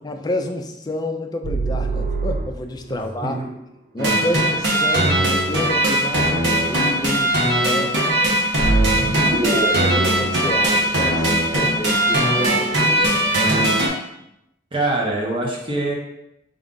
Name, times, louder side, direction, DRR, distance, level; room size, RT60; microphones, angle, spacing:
voice 1, 0.0-3.4 3.9-5.2 5.5-8.0 9.2-13.1, left 1 dB, 25° left, 4 dB, 0.4 m, -29 dB
sound 1, 1.4-3.0 8.6-11.7, right 2 dB, 50° right, 0.4 m, -24 dB
voice 2, 2.9-3.5 5.0-5.2 14.7-15.9, right 2 dB, 30° right, -2 dB, 0.9 m, -24 dB
sound 2, 4.0-13.9, right 1 dB, 75° right, 1.0 m, -19 dB
5.1 x 2.4 x 3.7 m, 0.83 s
head